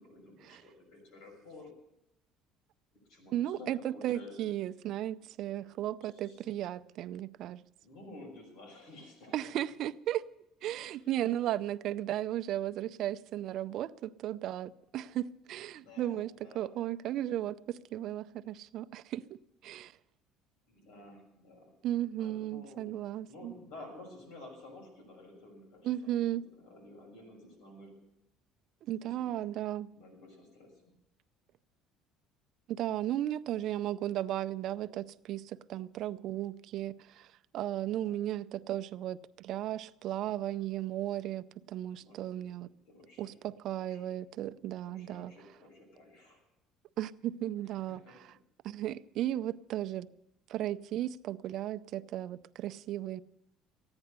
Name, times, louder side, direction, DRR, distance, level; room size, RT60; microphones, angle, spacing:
voice 1, 0.1-1.7 3.1-4.4 5.6-6.4 7.8-9.5 10.8-11.0 15.7-16.7 20.7-21.7 22.2-22.9 23.2-27.9 29.0-29.4 29.9-30.9 37.8-38.2 42.0-42.5 42.8-43.4 43.8-44.1 44.8-46.4 47.9-48.4, left 2 dB, 85° left, 2 dB, 6.3 m, -52 dB
voice 2, 3.3-7.6 9.3-10.2 10.6-19.4 19.6-19.9 21.8-23.5 25.8-26.4 28.8-29.9 32.7-42.7 43.2-45.3 47.0-48.0 48.6-50.1 50.5-53.2, right 12 dB, 55° right, 13 dB, 0.5 m, -35 dB
15.0 x 9.7 x 8.1 m, 0.83 s
cardioid pair, 135°, 0 cm